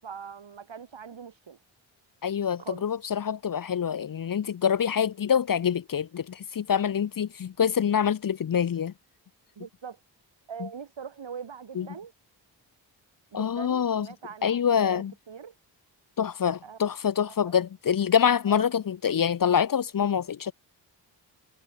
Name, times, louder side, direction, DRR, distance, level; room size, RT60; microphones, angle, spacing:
voice 1, 0.0-1.6 2.6-2.9 9.6-10.0 10.5-12.1 13.3-15.5 16.6-16.8 17.2-17.3 18.5-18.6, right 7 dB, 70° right, 7.9 m, -42 dB
voice 2, 2.2-8.9 10.6-10.7 11.8-11.9 13.3-14.1 14.4-15.1 16.2-20.5, left 8 dB, 45° left, 0.8 m, -25 dB
supercardioid pair, 45°, 47 cm